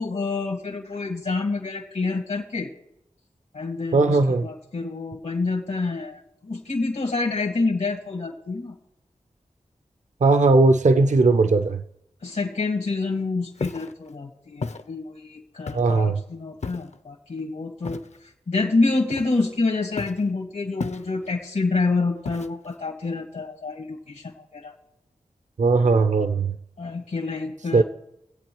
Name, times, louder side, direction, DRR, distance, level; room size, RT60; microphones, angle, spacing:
voice 1, 0.0-2.7 3.5-8.7 12.2-18.0 18.5-24.7 26.8-27.8, left 3 dB, 85° left, 1.7 m, -27 dB
voice 2, 3.9-4.5 10.2-11.8 15.7-16.2 25.6-26.5 27.7-27.8, right 3 dB, 65° right, 0.6 m, -18 dB
Walk footsteps, 13.5-13.9 14.6-14.8 15.7-16.0 16.6-17.0 17.8-18.2 19.1-19.6 20.0-20.3 20.8-21.3 22.2-22.7, left 4 dB, 60° left, 0.6 m, -33 dB
24.0 x 8.3 x 3.0 m
cardioid pair, 40°, 13 cm